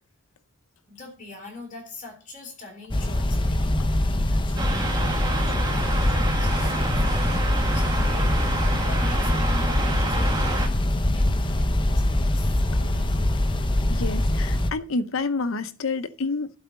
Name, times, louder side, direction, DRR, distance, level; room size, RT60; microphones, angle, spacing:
voice 1, 0.9-8.5 8.8-13.3, left 3 dB, 35° left, 3.5 m, -44 dB
sound 1, 2.9-14.7, left 1 dB, 20° left, 0.7 m, -23 dB
sound 2, 4.6-10.7, right 2 dB, 20° right, 1.8 m, -29 dB
voice 2, 13.9-16.5, left 3 dB, 65° left, 0.7 m, -28 dB
12.0 x 4.7 x 7.0 m
head